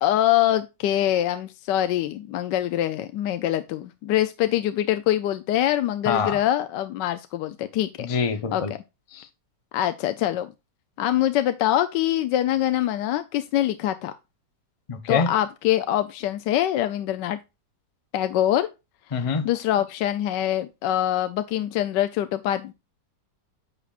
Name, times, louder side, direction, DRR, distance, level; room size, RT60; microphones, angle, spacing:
voice 1, 0.0-8.1 8.5-8.6 9.7-10.5 11.0-14.1 15.1-17.4 18.1-18.7 19.4-22.7, left 12 dB, 80° left, 1.2 m, -24 dB
voice 2, 6.0-6.4 8.0-8.7 9.1-9.3 14.9-15.3 19.1-19.5, left 5 dB, 35° left, 0.5 m, -25 dB
8.5 x 8.2 x 2.4 m
omnidirectional pair, 1.9 m